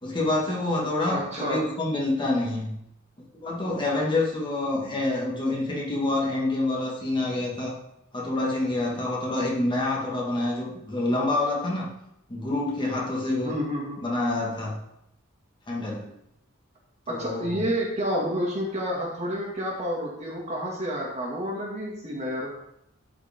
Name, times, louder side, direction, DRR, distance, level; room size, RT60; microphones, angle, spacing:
voice 1, 0.0-2.7 3.3-7.8 8.1-11.9 12.3-13.5 14.0-14.8 15.7-16.1 17.1-17.7, left 2 dB, 25° left, -4 dB, 1.7 m, -27 dB
voice 2, 1.1-1.7 13.4-14.0 17.1-22.5, equal, 35° right, -2 dB, 2.0 m, -29 dB
12.5 x 4.9 x 3.6 m, 0.79 s
head